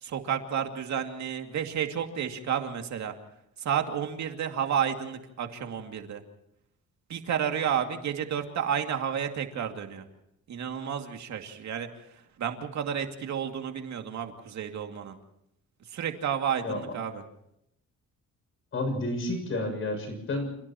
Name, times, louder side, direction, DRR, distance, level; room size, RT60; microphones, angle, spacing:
voice 1, 0.0-3.1 3.6-6.2 7.1-10.0 10.5-11.9 12.4-15.2 15.9-17.2, right 8 dB, 65° right, 4 dB, 2.5 m, -31 dB
voice 2, 18.7-20.5, left 2 dB, 40° left, 5 dB, 7.0 m, -30 dB
29.5 x 29.0 x 3.0 m, 0.78 s
cardioid pair, 165°, 31 cm